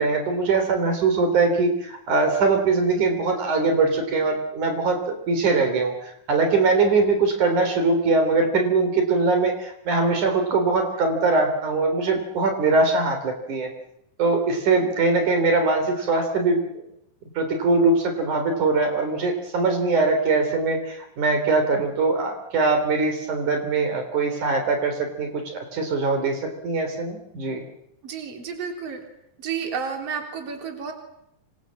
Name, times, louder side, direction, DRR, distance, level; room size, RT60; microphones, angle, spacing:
voice 1, 0.0-13.7 14.2-16.6 17.4-27.6, right 3 dB, 65° right, 5 dB, 4.8 m, -22 dB
voice 2, 28.0-29.0 29.4-30.9, right 6 dB, 45° right, 4 dB, 4.5 m, -31 dB
27.0 x 25.0 x 7.6 m, 0.81 s
omnidirectional pair, 3.8 m